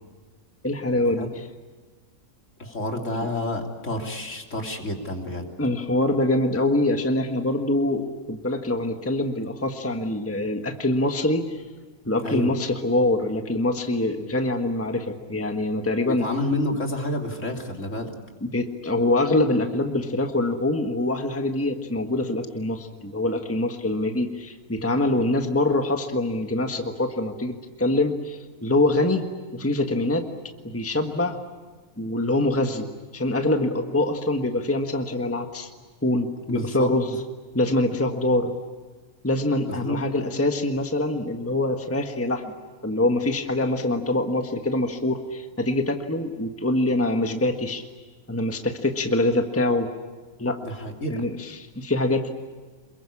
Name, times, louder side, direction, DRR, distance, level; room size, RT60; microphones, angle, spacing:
voice 1, 0.6-1.3 5.6-11.6 12.1-16.2 18.4-29.2 29.5-30.2 30.6-31.4 32.0-32.9 33.1-35.7 36.0-37.2 37.5-38.5 39.2-42.4 42.8-47.8 48.3-49.9 50.4-50.6 51.1-52.3, left 2 dB, 10° left, 5 dB, 1.5 m, -24 dB
voice 2, 2.6-5.5 12.2-12.5 16.0-18.1 36.5-36.9 39.7-40.0 50.6-51.2, left 1 dB, 55° left, 2 dB, 3.6 m, -29 dB
28.0 x 22.0 x 8.6 m, 1.4 s
omnidirectional pair, 1.5 m